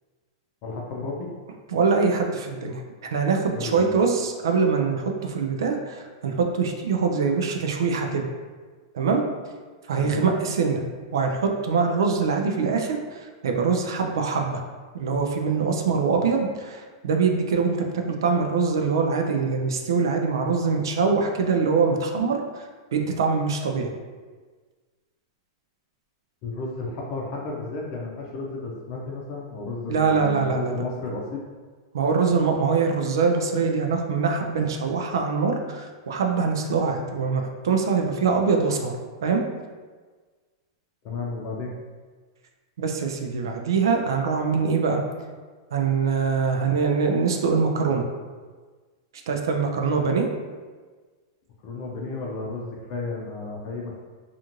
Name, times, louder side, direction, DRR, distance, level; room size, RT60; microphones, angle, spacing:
voice 1, 0.6-1.3 3.5-3.9 10.0-10.2 26.4-31.4 41.0-41.7 51.6-54.1, left 3 dB, 50° left, -2 dB, 0.5 m, -33 dB
voice 2, 1.7-2.8 3.1-8.2 8.9-9.2 9.9-10.8 11.1-14.6 14.9-17.8 18.1-22.6 22.9-23.9 29.9-30.8 31.9-38.9 39.2-39.4 42.8-45.0 45.7-48.0 49.3-50.3, right 5 dB, 80° right, 3 dB, 0.4 m, -23 dB
2.5 x 2.4 x 2.9 m, 1.4 s
hypercardioid pair, 125°, 2 cm